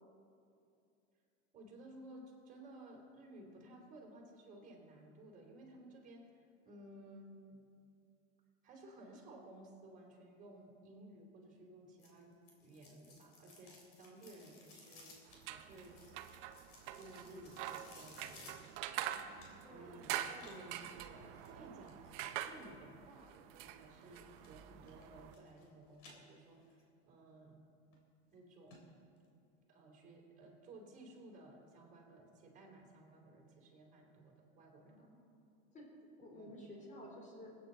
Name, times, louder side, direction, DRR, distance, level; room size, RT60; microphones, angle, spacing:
voice 1, 1.5-7.6 8.6-15.1 15.4-16.0 17.0-18.6 19.7-22.0 22.4-26.6 27.1-27.6 28.3-28.8 29.7-35.1 36.3-36.5, right 1 dB, 25° right, -2 dB, 3.7 m, -56 dB
sound 1, 12.0-19.8 20.4-22.1 24.0-24.5 24.8-25.7 25.9-26.8 27.2-27.3 27.9-28.0 28.3-28.4 28.7-28.8 29.2-29.3, left 2 dB, 50° left, 3.4 m, -60 dB
sound 2, 15.3-25.4, right 11 dB, 60° right, 0.8 m, -46 dB
voice 2, 19.1-19.9 34.8-35.4 35.7-37.5, equal, 20° left, -2 dB, 3.6 m, -54 dB
21.0 x 9.2 x 4.1 m, 2.6 s
supercardioid pair, 130°, 34 cm